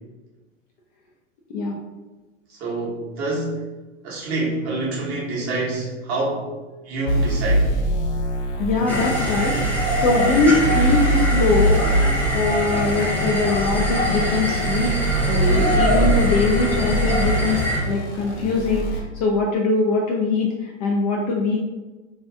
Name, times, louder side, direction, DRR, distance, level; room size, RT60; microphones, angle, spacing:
voice 1, 2.5-3.6 4.0-6.6 6.8-7.7 15.3-16.2, right 2 dB, 35° right, -4 dB, 1.1 m, -27 dB
sound 1, 7.1-19.0, right 1 dB, 65° left, 1.1 m, -23 dB
sound 2, 8.5-8.6 8.9-9.0 9.3-9.4 9.6-9.7 10.0-10.1 10.4-10.8 11.1-11.2 11.5-11.6 11.9-12.0 12.2-12.3, right 7 dB, 55° right, 0.6 m, -34 dB
voice 2, 8.6-9.6 10.0-11.8 12.3-15.0 15.3-21.6, left 3 dB, 35° left, -1 dB, 0.4 m, -22 dB
sound 3, 8.9-17.8, equal, 5° left, 0.7 m, -24 dB
2.7 x 2.3 x 3.4 m, 1.2 s
figure-of-eight pair, 100°, 38 cm